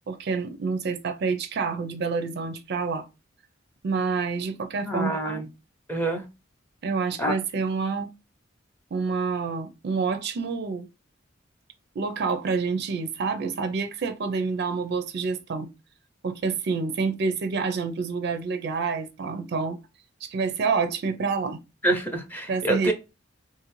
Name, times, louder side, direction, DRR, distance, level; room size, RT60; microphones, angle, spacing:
voice 1, 0.1-3.1 3.8-5.5 6.8-8.1 8.9-10.9 12.0-15.7 16.2-19.8 20.2-21.6 22.5-22.9, right 4 dB, 55° right, 0.4 m, -28 dB
voice 2, 4.8-5.5 5.9-6.2 7.2-7.3 21.8-22.9, right 1 dB, 10° left, 0.6 m, -26 dB
2.6 x 2.5 x 3.0 m
head